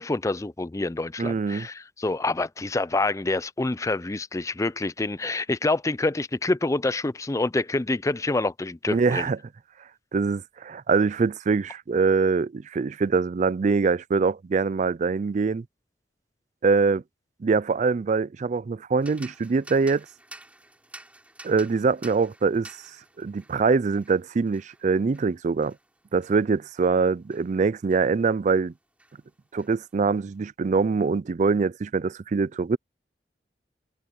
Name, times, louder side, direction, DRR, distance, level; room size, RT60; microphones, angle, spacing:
voice 1, 0.0-9.3, left 2 dB, 20° left, 0.4 m, -27 dB
voice 2, 1.2-1.7 8.9-9.4 10.1-15.6 16.6-17.0 17.4-20.1 21.4-22.7 23.2-25.7 26.1-28.7 29.5-32.8, right 4 dB, 45° right, 0.4 m, -23 dB
sound 1, 19.0-28.7 29.0-30.3, right 2 dB, 10° right, 5.1 m, -51 dB
head